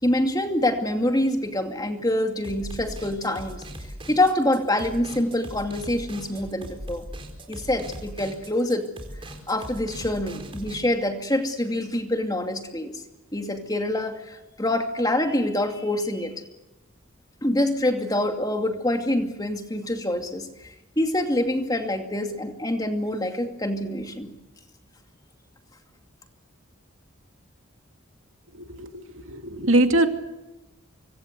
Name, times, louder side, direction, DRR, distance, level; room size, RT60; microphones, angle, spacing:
voice 1, 0.0-3.6 4.1-7.0 7.5-8.9 9.5-12.9 13.3-16.3 17.4-20.5 21.0-24.3, left 1 dB, 20° left, 5 dB, 2.5 m, -25 dB
sound 1, 2.4-10.8, right 1 dB, 25° right, 4.3 m, -39 dB
voice 2, 28.5-30.1, right 1 dB, 75° right, 6 dB, 2.5 m, -22 dB
26.0 x 24.0 x 8.2 m, 0.97 s
head